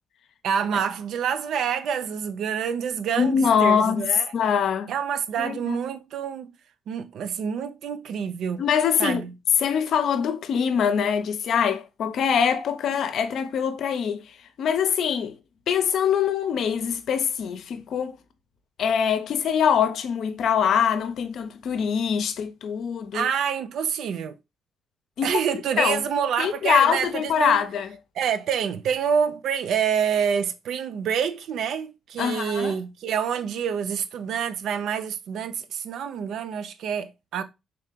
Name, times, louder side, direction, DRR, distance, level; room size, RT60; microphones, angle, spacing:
voice 1, 0.4-4.3 4.9-6.5 6.9-8.6 9.0-9.3 23.1-24.4 25.2-27.6 28.2-37.4, right 7 dB, 75° right, 0.5 m, -27 dB
voice 2, 3.2-4.1 4.3-4.9 5.4-5.8 8.6-9.2 9.6-15.4 15.7-18.2 18.8-23.3 25.2-25.4 25.8-26.0 26.4-27.9 32.2-32.8, left 7 dB, 70° left, 0.6 m, -23 dB
3.8 x 2.8 x 3.4 m
cardioid pair, 90°, 0 cm